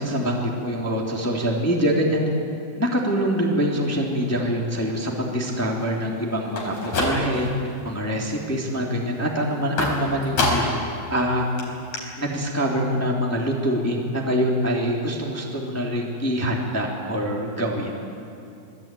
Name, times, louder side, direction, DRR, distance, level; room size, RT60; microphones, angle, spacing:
voice 1, 0.0-2.2 2.8-7.5 7.8-10.6 11.1-11.5 12.2-17.9, equal, 5° left, -1 dB, 2.5 m, -24 dB
sound 1, 6.4-7.6 8.0-8.5 9.8-10.9 11.2-11.3 11.6-11.7 11.9-12.0, left 2 dB, 55° left, 5.7 m, -26 dB
27.0 x 19.5 x 9.2 m, 2.6 s
omnidirectional pair, 4.1 m